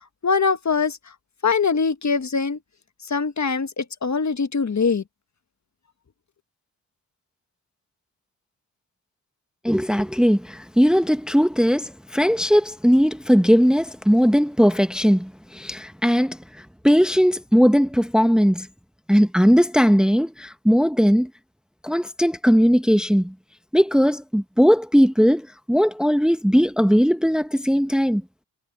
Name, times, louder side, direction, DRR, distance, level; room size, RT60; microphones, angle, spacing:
voice 1, 0.2-1.0 1.4-2.6 3.1-5.0, left 5 dB, 40° left, 1.6 m, -22 dB
voice 2, 9.6-16.4 16.8-18.7 19.1-21.3 21.8-23.3 23.7-28.2, equal, ahead, 1.2 m, -18 dB
supercardioid pair, 55°, 42 cm